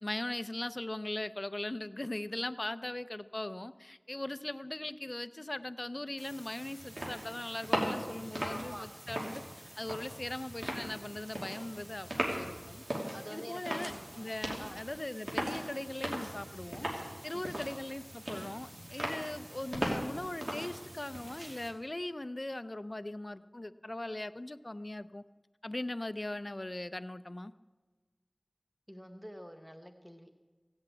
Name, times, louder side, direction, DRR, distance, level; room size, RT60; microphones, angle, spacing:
voice 1, 0.0-9.4 9.8-12.8 13.3-16.9 17.2-25.2 25.6-27.5, left 1 dB, 50° left, 12 dB, 0.5 m, -39 dB
sound 1, 6.2-21.7, right 1 dB, 90° right, 2.7 m, -39 dB
voice 2, 8.4-8.9 13.1-14.0 14.6-14.8 17.3-17.8 28.9-30.3, equal, ahead, 6 dB, 0.9 m, -47 dB
16.5 x 8.1 x 8.8 m, 1.3 s
wide cardioid pair, 45°, 0 cm